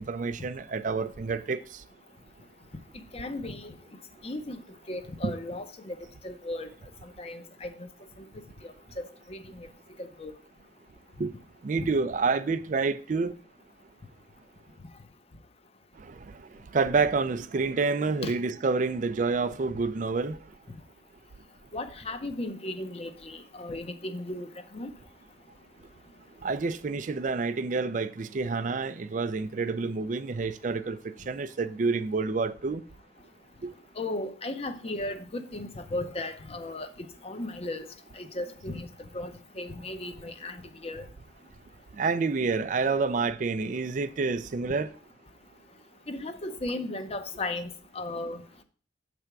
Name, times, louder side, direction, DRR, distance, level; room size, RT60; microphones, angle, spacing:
voice 1, 0.0-1.6 5.2-5.3 11.2-11.3 11.6-13.3 16.0-16.1 16.7-20.4 26.4-31.0 31.3-32.8 33.6-33.7 42.0-44.9, right 4 dB, 45° right, 0.4 m, -28 dB
voice 2, 3.1-3.7 4.2-4.6 4.9-6.0 6.2-6.7 7.0-7.9 8.2-8.3 9.3-9.7 10.0-10.3 11.8-11.9 18.2-18.3 21.7-24.9 34.0-36.9 37.2-37.9 38.1-38.9 39.1-39.3 39.6-40.6 40.8-41.1 46.1-48.6, left 2 dB, 35° left, 0.7 m, -36 dB
7.7 x 3.4 x 5.9 m
head